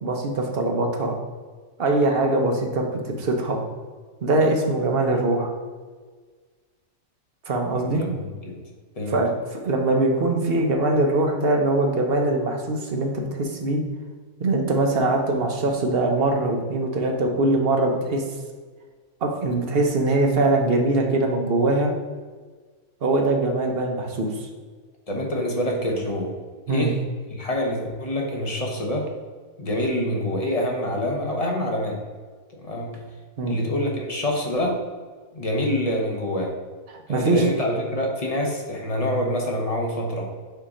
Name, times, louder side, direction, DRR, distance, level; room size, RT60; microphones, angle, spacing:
voice 1, 0.0-1.1 1.8-3.6 4.2-5.5 7.5-8.0 9.1-13.8 14.4-18.2 19.2-21.9 23.0-24.5 26.7-26.9 33.4-33.6 37.1-37.4, right 2 dB, 45° right, 2 dB, 0.9 m, -22 dB
voice 2, 7.7-8.6 9.0-9.2 25.1-26.3 26.7-27.0 27.3-29.1 29.6-32.0 32.6-33.0 33.5-34.8 35.3-36.5 37.1-40.3, left 1 dB, 30° left, 0 dB, 0.9 m, -26 dB
6.8 x 2.9 x 5.0 m, 1.5 s
omnidirectional pair, 1.6 m